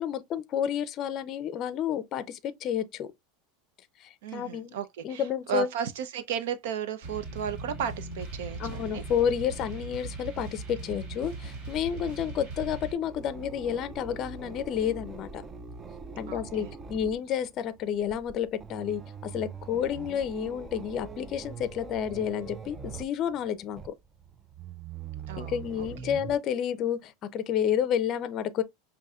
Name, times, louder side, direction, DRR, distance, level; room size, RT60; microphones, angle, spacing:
voice 1, 0.0-3.1 4.0-4.8 5.0-5.7 8.6-15.5 16.2-23.9 25.4-28.6, left 9 dB, 35° left, 0.5 m, -30 dB
voice 2, 4.2-9.0 16.3-16.7 25.3-26.1, right 8 dB, 75° right, 0.6 m, -34 dB
sound 1, 7.0-12.9, right 3 dB, 50° right, 2.5 m, -39 dB
sound 2, 11.5-26.4, right 6 dB, 20° right, 0.4 m, -43 dB
5.5 x 2.6 x 2.3 m
supercardioid pair, 145°, 0 cm